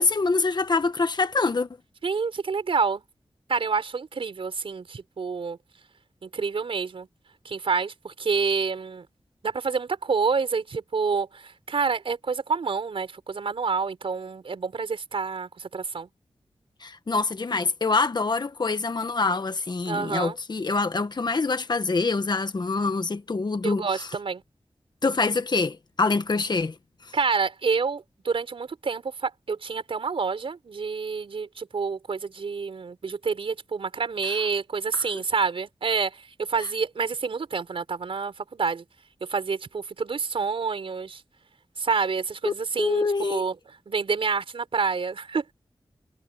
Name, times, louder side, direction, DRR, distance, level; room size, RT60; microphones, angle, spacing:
voice 1, 0.0-1.7 16.8-23.8 25.0-26.7 34.9-35.1 42.4-43.4, left 3 dB, 50° left, 1.4 m, -25 dB
voice 2, 2.0-3.0 3.5-5.6 6.2-7.1 7.4-9.1 9.4-16.1 19.9-20.4 23.6-24.4 27.1-38.8 39.3-41.2 41.8-43.5 43.9-45.5, right 5 dB, 80° right, 4.9 m, -28 dB
cardioid pair, 55°, 9 cm